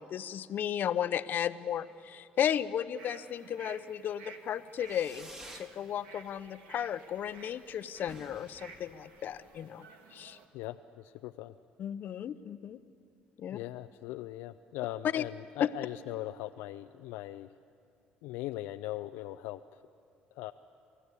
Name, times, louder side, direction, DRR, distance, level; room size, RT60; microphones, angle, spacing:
voice 1, 0.0-5.3 5.5-9.9 10.1-10.4 11.8-12.8 13.4-13.6 15.1-15.2, left 9 dB, 60° left, 13 dB, 0.8 m, -34 dB
sound 1, 3.0-10.5, right 4 dB, 85° right, 1.8 m, -54 dB
Fireworks, 4.8-5.7 6.1-6.7 6.9-7.0 7.3-7.4 7.6-7.7 8.0-9.6, right 1 dB, 15° right, 2.1 m, -51 dB
voice 2, 10.5-11.6 13.5-17.5 18.2-19.9 20.3-20.5, left 15 dB, 85° left, 8 dB, 0.5 m, -40 dB
29.0 x 14.0 x 8.3 m, 2.4 s
supercardioid pair, 70°, 4 cm